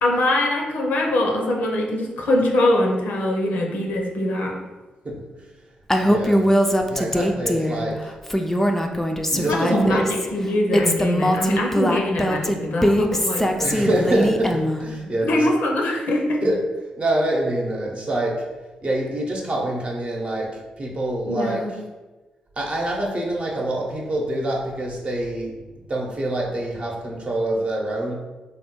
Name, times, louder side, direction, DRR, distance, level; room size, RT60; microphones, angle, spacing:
voice 1, 0.0-4.6 9.3-10.0 10.3-13.5 15.2-16.4 21.3-21.7, left 1 dB, 70° left, 0 dB, 0.6 m, -22 dB
Female speech woman speaking, 5.9-7.8 8.2-10.3 10.7-14.9, equal, 10° left, 0.4 m, -21 dB
voice 2, 6.0-6.5 6.8-8.1 9.3-10.1 13.6-15.5 16.4-16.6 17.0-18.4 18.8-21.7 22.6-25.6 25.9-28.1, right 1 dB, 40° right, -1 dB, 0.8 m, -25 dB
3.2 x 2.1 x 3.0 m, 1.2 s
hypercardioid pair, 45°, 3 cm